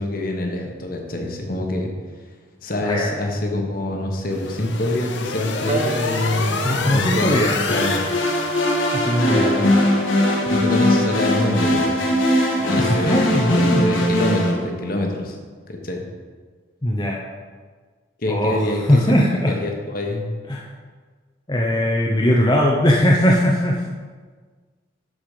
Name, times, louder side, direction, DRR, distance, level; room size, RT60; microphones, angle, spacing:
voice 1, 0.0-1.9 2.6-8.1 9.2-9.7 10.4-12.1 12.6-15.4 15.7-16.0 18.2-19.0 19.5-20.3, left 1 dB, 45° left, 2 dB, 1.4 m, -25 dB
sound 1, 4.3-9.9, left 4 dB, 65° left, 0.8 m, -29 dB
sound 2, 5.7-10.8, right 2 dB, 35° right, 0.5 m, -33 dB
voice 2, 6.6-7.9 8.9-9.6 12.8-14.0 16.8-17.2 18.3-19.5 20.5-20.7 21.5-23.9, equal, 20° left, -2 dB, 0.8 m, -20 dB
sound 3, 7.7-14.5, left 1 dB, 80° left, 1.9 m, -20 dB
11.5 x 5.3 x 5.1 m, 1.5 s
head